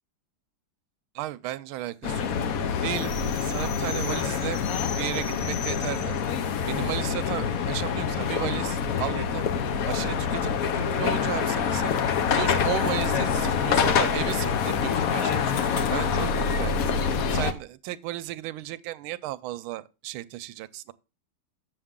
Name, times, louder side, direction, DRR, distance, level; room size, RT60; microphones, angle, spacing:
voice 1, 1.1-2.3 2.8-4.6 5.0-6.2 6.6-9.4 9.9-11.9 12.3-16.8 17.3-20.9, right 15 dB, 80° right, 1.3 m, -34 dB
sound 1, 2.0-17.5, left 6 dB, 70° left, 0.8 m, -26 dB
7.8 x 6.9 x 3.6 m
omnidirectional pair, 2.4 m